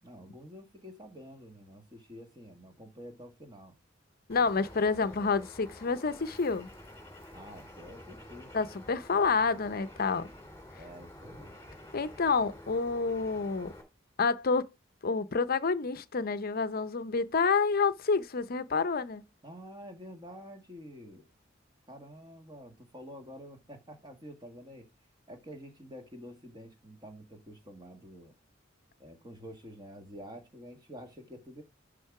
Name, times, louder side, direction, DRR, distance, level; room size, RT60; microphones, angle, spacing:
voice 1, 0.0-3.8 7.3-8.5 10.7-11.6 19.4-21.3 21.9-24.9 25.3-28.3 29.0-31.6, equal, 20° right, 1.7 m, -48 dB
voice 2, 4.3-6.7 8.5-10.3 11.9-13.7 14.2-14.7 15.0-19.2, left 4 dB, 50° left, 0.6 m, -28 dB
Bird, 4.3-13.8, left 1 dB, 15° left, 2.8 m, -49 dB
11.0 x 3.8 x 4.8 m
head